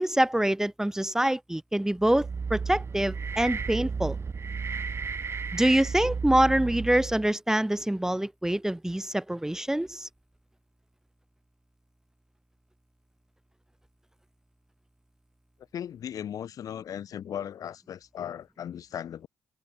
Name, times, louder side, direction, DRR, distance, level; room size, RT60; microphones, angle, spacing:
voice 1, 0.0-4.2 5.5-10.1, right 1 dB, 10° right, 1.3 m, -25 dB
sound 1, 2.0-7.3, right 5 dB, 40° right, 4.2 m, -33 dB
voice 2, 15.7-19.3, left 9 dB, 65° left, 7.1 m, -37 dB
supercardioid pair, 55°, 6 cm